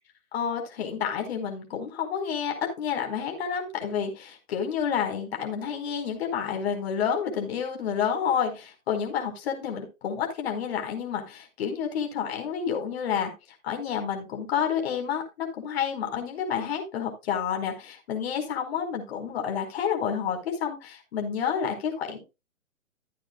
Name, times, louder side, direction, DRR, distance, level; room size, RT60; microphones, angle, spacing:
voice 1, 0.3-13.3 13.6-22.2, left 7 dB, 45° left, 3 dB, 4.7 m, -29 dB
15.5 x 8.8 x 2.4 m, 0.26 s
hypercardioid pair, 140°, 42 cm